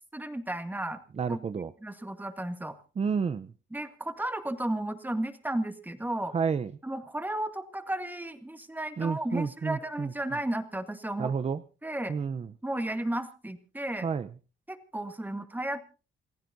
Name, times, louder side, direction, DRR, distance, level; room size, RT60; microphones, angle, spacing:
voice 1, 0.1-1.0 1.3-1.4 1.8-2.8 3.7-6.4 6.8-11.3 11.8-12.1 12.6-14.1 14.7-15.8, right 1 dB, 10° right, 8 dB, 2.1 m, -33 dB
voice 2, 1.2-1.7 3.0-3.5 6.3-6.7 9.0-10.1 11.2-11.6 12.1-12.5 14.0-14.3, right 5 dB, 30° right, 13 dB, 0.7 m, -30 dB
28.5 x 15.5 x 2.7 m, 0.36 s
cardioid pair, 90°, 20 cm